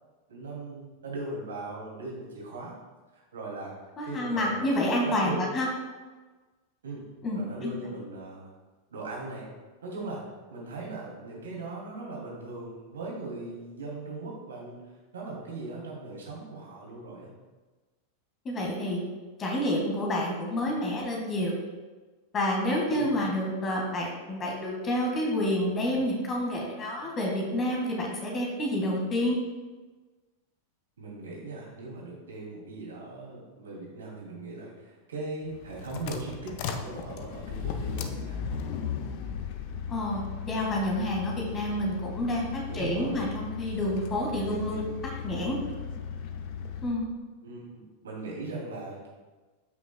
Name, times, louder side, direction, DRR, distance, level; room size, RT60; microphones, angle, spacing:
voice 1, 0.3-2.7 3.1-3.7 4.0-4.7 5.0-5.4 6.8-7.0 7.3-8.5 8.9-9.5 9.8-10.2 10.5-14.8 15.1-17.3 22.9-23.3 31.0-38.4 42.7-43.2 47.4-49.1, right 3 dB, 65° right, -3 dB, 2.5 m, -39 dB
voice 2, 4.0-5.7 7.2-7.7 18.4-19.0 19.4-21.5 22.3-29.4 39.9-44.9 45.2-45.6 46.8-47.2, left 1 dB, 25° left, -1 dB, 1.7 m, -29 dB
sound 1, 35.5-47.0, left 7 dB, 45° left, 0.6 m, -36 dB
13.0 x 6.1 x 2.2 m, 1.3 s
figure-of-eight pair, 90°, 0 cm